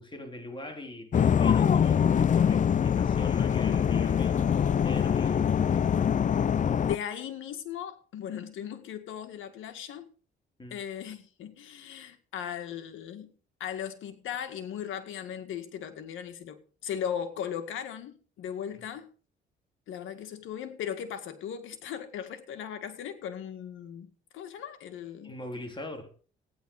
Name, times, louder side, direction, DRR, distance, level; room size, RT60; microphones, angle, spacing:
voice 1, 0.0-6.1 10.6-10.8 18.7-18.8 25.2-26.1, left 1 dB, 25° left, 3.8 m, -42 dB
sound 1, 1.1-7.0, left 8 dB, 40° left, 0.6 m, -24 dB
voice 2, 6.8-10.1 10.7-13.3 13.6-19.1 19.9-24.1 24.3-25.3, left 9 dB, 80° left, 1.9 m, -37 dB
15.0 x 10.0 x 4.9 m
cardioid pair, 90°, 20 cm